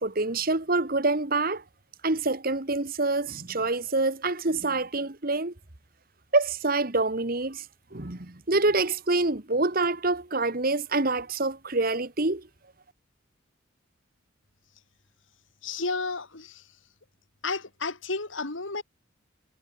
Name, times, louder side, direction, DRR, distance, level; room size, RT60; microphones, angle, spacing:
voice 1, 0.0-1.6 2.0-5.5 6.3-7.6 7.9-12.4, right 3 dB, 45° right, 1.7 m, -26 dB
voice 2, 15.6-16.6 17.4-18.8, left 3 dB, 75° left, 2.6 m, -32 dB
head